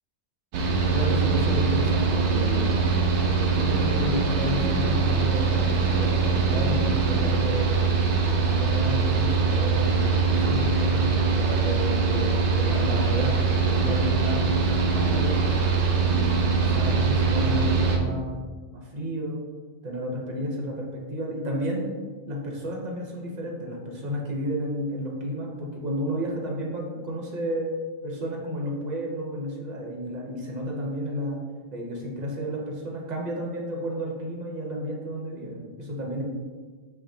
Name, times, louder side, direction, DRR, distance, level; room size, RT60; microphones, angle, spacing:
Mechanical fan, 0.5-18.0, right 4 dB, 85° right, 0.9 m, -23 dB
voice 1, 0.9-3.0 3.3-7.8 8.4-18.4 18.7-19.5 19.8-21.9 22.3-27.7 28.0-31.4 31.7-36.2, equal, 45° right, -1 dB, 0.9 m, -32 dB
5.9 x 3.1 x 2.7 m, 1.5 s
omnidirectional pair, 1.1 m